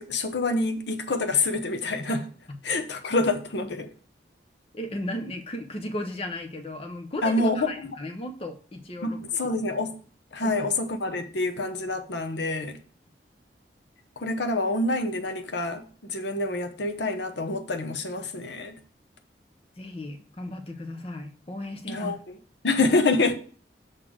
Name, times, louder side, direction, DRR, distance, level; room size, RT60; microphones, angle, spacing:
voice 1, 0.0-2.3 2.6-3.9 7.2-7.7 9.0-10.0 10.3-12.8 14.2-18.8 21.9-22.4 22.6-23.3, left 2 dB, 80° left, 0.8 m, -27 dB
voice 2, 4.7-9.2 10.4-10.7 19.8-22.1, left 1 dB, 35° left, 0.7 m, -35 dB
6.4 x 4.0 x 6.1 m
head